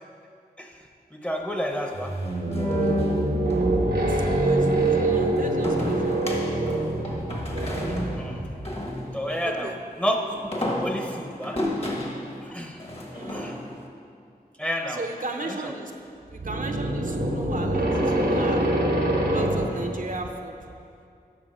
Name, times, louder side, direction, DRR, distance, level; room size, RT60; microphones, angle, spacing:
voice 1, 1.1-2.1 7.9-8.4 9.1-11.6 12.4-12.8 13.3-13.6 14.6-15.0 15.4-15.7, equal, 5° left, 2 dB, 0.9 m, -30 dB
sound 1, 1.7-3.6 5.6-9.5 10.3-13.9, left 1 dB, 40° left, 1.4 m, -32 dB
sound 2, 1.9-8.7 16.3-19.7, right 1 dB, 90° right, 1.1 m, -25 dB
voice 2, 4.1-7.1 9.4-9.8 13.1-13.6 14.9-15.9 16.3-18.6 19.3-20.6, right 2 dB, 55° right, 3 dB, 0.8 m, -36 dB
8.6 x 5.8 x 5.6 m, 2.4 s
wide cardioid pair, 45°, 16 cm